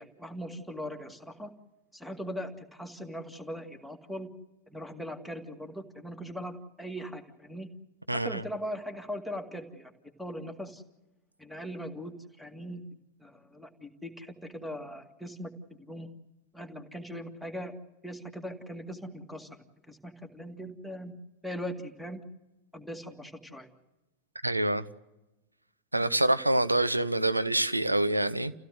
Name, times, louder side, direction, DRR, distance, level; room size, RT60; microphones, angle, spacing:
voice 1, 0.0-1.5 1.9-4.3 4.7-7.7 8.2-9.9 10.2-10.8 11.4-12.8 13.2-15.5 15.9-16.1 16.5-17.7 18.0-21.1 21.4-22.2 22.7-23.7, equal, ahead, 2.2 m, -40 dB
voice 2, 8.1-8.4 24.4-24.9 25.9-28.5, right 1 dB, 85° right, 0.9 m, -26 dB
28.5 x 16.5 x 7.9 m
figure-of-eight pair, 90°, 0 cm